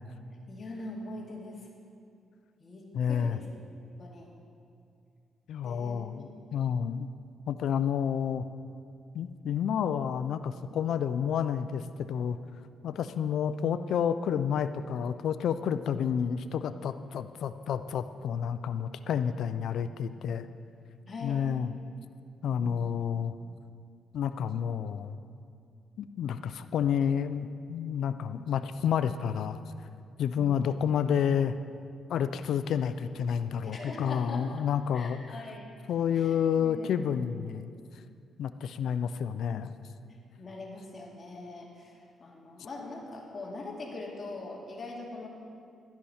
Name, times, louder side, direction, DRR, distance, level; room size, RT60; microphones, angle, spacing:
voice 1, 0.5-1.7 2.6-3.4 4.0-4.3 5.6-6.2 21.1-21.4 22.6-22.9 33.6-34.4 34.9-35.7 36.1-36.9 40.4-45.3, left 2 dB, 40° left, -2 dB, 2.3 m, -42 dB
voice 2, 2.9-3.4 5.5-7.1 7.5-8.5 9.1-12.4 12.8-20.5 21.2-21.7 22.4-23.3 24.1-25.2 26.0-29.6 30.2-31.6 32.1-35.2 35.9-37.7 38.4-39.7, left 8 dB, 75° left, 11 dB, 0.4 m, -30 dB
12.0 x 10.5 x 4.3 m, 2.4 s
cardioid pair, 95°, 0 cm